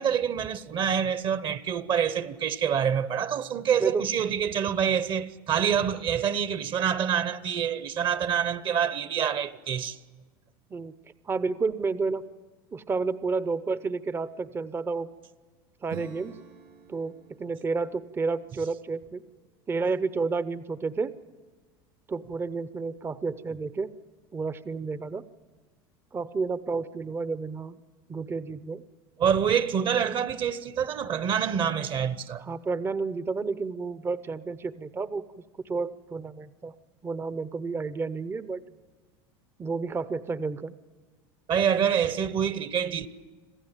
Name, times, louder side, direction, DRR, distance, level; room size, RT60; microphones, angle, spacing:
voice 1, 0.0-10.0 29.2-32.4 41.5-43.1, right 8 dB, 40° right, 1.0 m, -26 dB
voice 2, 11.3-12.3 12.7-15.1 15.8-16.3 16.9-17.1 17.4-19.2 19.7-21.1 22.1-23.9 24.3-25.2 26.1-27.8 28.1-28.8 32.4-35.2 35.7-36.7 37.0-38.6 39.6-40.8, right 4 dB, 20° right, 0.7 m, -30 dB
Acoustic guitar / Strum, 15.9-20.2, right 9 dB, 75° right, 6.2 m, -49 dB
26.5 x 15.0 x 9.0 m
supercardioid pair, 110°, 13 cm